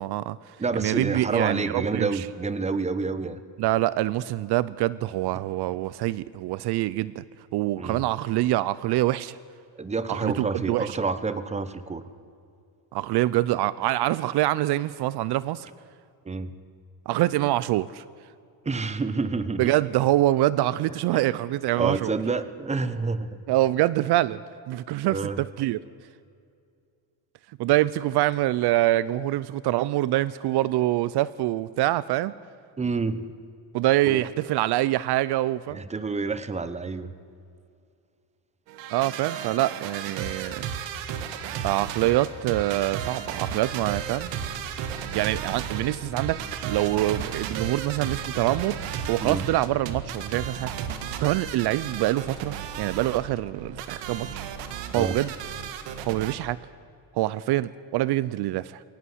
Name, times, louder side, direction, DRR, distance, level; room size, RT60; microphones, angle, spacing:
voice 1, 0.0-2.2 3.6-7.2 7.5-9.4 10.1-11.0 12.9-15.7 17.1-18.0 19.6-22.1 23.5-24.4 24.7-25.8 27.6-32.3 33.7-35.8 38.9-40.7 41.6-44.3 45.1-48.8 49.1-50.7 51.2-54.4 54.9-55.3 56.1-56.6 57.1-58.8, right 15 dB, 65° right, 19 dB, 0.6 m, -25 dB
voice 2, 0.6-3.4 7.8-8.0 9.8-12.0 16.2-16.5 18.6-19.6 21.1-21.2 21.8-23.4 25.1-25.4 32.8-33.3 34.1-34.2 35.7-37.1 49.2-49.5 54.9-55.3, right 4 dB, 15° right, 13 dB, 1.1 m, -28 dB
sound 1, 38.7-56.3, right 8 dB, 90° right, 1.9 m, -34 dB
21.5 x 18.5 x 8.0 m, 2.4 s
cardioid pair, 125°, 43 cm